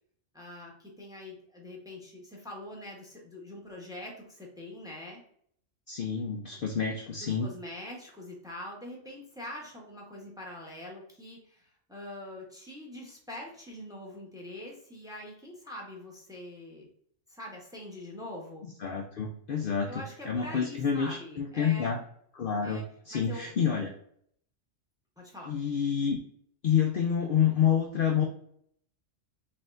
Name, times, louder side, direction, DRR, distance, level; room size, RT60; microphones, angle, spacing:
voice 1, 0.3-5.2 7.2-16.9 17.3-18.6 19.9-22.0 22.6-22.8 23.1-23.5 25.2-25.5, left 1 dB, 5° right, -1 dB, 0.9 m, -44 dB
voice 2, 5.9-7.5 18.8-22.0 22.3-23.9 25.5-26.2 26.6-28.3, left 7 dB, 55° left, 2 dB, 0.6 m, -28 dB
4.4 x 3.3 x 2.5 m, 0.65 s
omnidirectional pair, 1.3 m